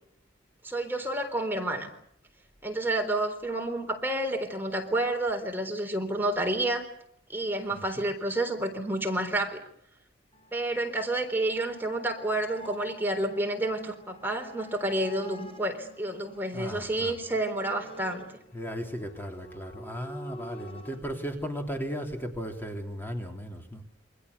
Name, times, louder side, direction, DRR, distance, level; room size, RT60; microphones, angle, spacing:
voice 1, 0.6-1.9 2.6-6.9 7.3-9.6 10.5-18.3, right 1 dB, 10° right, 4 dB, 3.8 m, -29 dB
voice 2, 7.7-8.1 16.5-17.2 18.5-23.8, equal, 10° left, 3 dB, 3.5 m, -36 dB
sound 1, 10.3-21.0, right 1 dB, 30° left, 5.0 m, -48 dB
28.5 x 25.0 x 6.9 m, 0.69 s
head